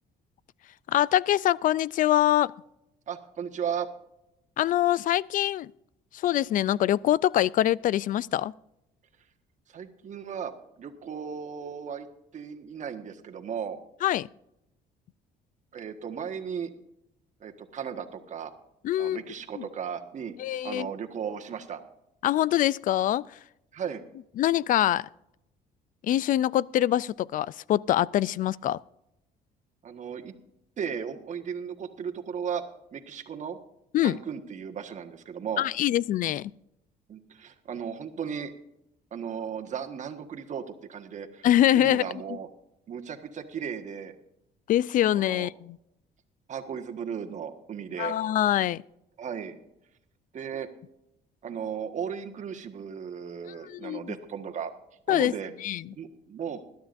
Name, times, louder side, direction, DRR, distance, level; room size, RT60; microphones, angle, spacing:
voice 1, 0.9-2.5 4.6-5.7 6.1-8.5 14.0-14.3 18.8-19.2 19.5-19.7 20.4-20.9 22.2-23.3 24.4-25.1 26.0-28.8 33.9-34.2 35.6-36.5 41.4-42.0 42.3-42.4 44.7-45.8 48.0-48.8 53.7-54.1 55.1-55.3 55.6-55.8, left 12 dB, 50° left, 0.4 m, -24 dB
voice 2, 3.1-3.9 9.7-12.1 12.3-13.8 15.7-16.7 17.4-18.5 19.0-20.4 20.6-21.8 23.7-24.0 29.8-30.3 30.8-32.6 32.9-33.6 34.0-35.6 37.1-38.5 39.1-41.5 41.7-42.5 42.9-44.1 45.0-45.5 46.5-48.1 49.2-49.6 50.3-50.7 51.4-54.7 55.1-55.5 56.0-56.6, right 7 dB, 45° right, 1.5 m, -36 dB
21.0 x 12.0 x 2.6 m
cardioid pair, 110°, 17 cm